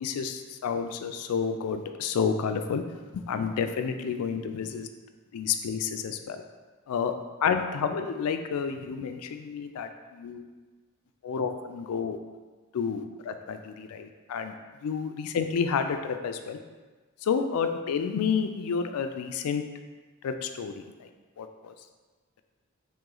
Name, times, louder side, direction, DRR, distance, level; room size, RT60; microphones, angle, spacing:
voice 1, 0.0-2.8 3.1-4.9 5.3-6.4 6.9-7.1 7.4-10.4 11.2-12.2 12.7-14.5 14.8-16.6 17.2-19.6 20.2-20.8 21.4-21.7, left 6 dB, 90° left, 7 dB, 0.3 m, -30 dB
3.0 x 3.0 x 3.7 m, 1.3 s
head